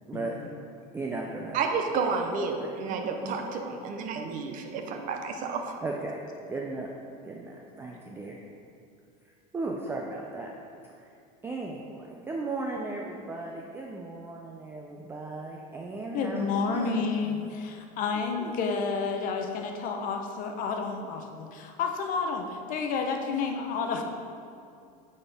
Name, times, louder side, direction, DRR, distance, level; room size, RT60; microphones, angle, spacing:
voice 1, 0.9-1.6 2.6-3.6 5.8-6.2 6.5-6.9 7.2-8.4 9.2-10.5 10.9-11.1 11.4-17.5 18.4-18.5, right 3 dB, 10° right, -1 dB, 0.4 m, -37 dB
voice 2, 1.5-5.7, right 4 dB, 40° right, 4 dB, 0.7 m, -31 dB
voice 3, 16.1-24.0, left 5 dB, 40° left, 4 dB, 0.7 m, -30 dB
9.0 x 4.3 x 3.5 m, 2.5 s
supercardioid pair, 135°, 20 cm